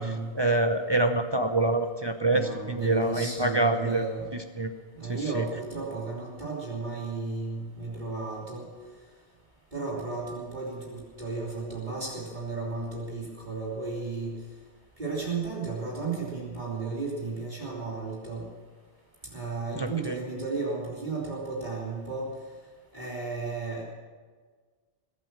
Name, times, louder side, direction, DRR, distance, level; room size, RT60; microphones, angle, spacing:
voice 1, 0.0-4.0 4.3-4.7 5.1-5.4 19.7-20.2, right 2 dB, 25° right, 6 dB, 0.8 m, -26 dB
voice 2, 2.3-4.2 4.9-8.7 9.7-14.3 15.0-18.4 19.3-22.3 22.9-23.8, right 4 dB, 45° right, -5 dB, 3.3 m, -34 dB
21.5 x 8.9 x 7.5 m, 1.5 s
omnidirectional pair, 1.1 m